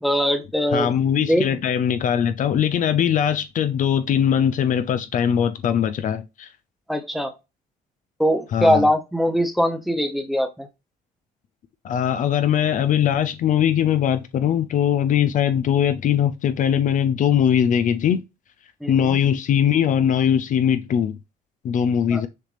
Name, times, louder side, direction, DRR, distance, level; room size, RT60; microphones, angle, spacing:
voice 1, 0.0-0.9 1.2-1.4 6.9-7.4 8.2-10.7 18.8-19.2 22.1-22.2, equal, ahead, 0.7 m, -21 dB
voice 2, 0.7-6.5 8.5-8.9 11.8-18.2 18.9-21.2 21.6-22.3, left 9 dB, 50° left, 0.5 m, -21 dB
6.5 x 2.5 x 3.3 m
cardioid pair, 110°, 17 cm